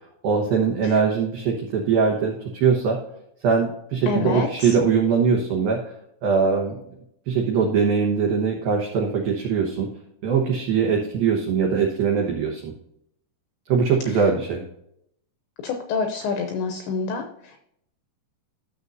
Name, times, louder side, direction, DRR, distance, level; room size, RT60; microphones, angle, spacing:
voice 1, 0.2-3.0 3.4-5.8 6.2-6.8 7.3-9.9 10.2-12.7 13.7-14.6, right 5 dB, 85° right, 0 dB, 2.1 m, -21 dB
voice 2, 4.1-4.8 15.6-17.7, left 5 dB, 80° left, 5 dB, 2.6 m, -27 dB
13.5 x 6.6 x 2.6 m, 0.74 s
omnidirectional pair, 5.9 m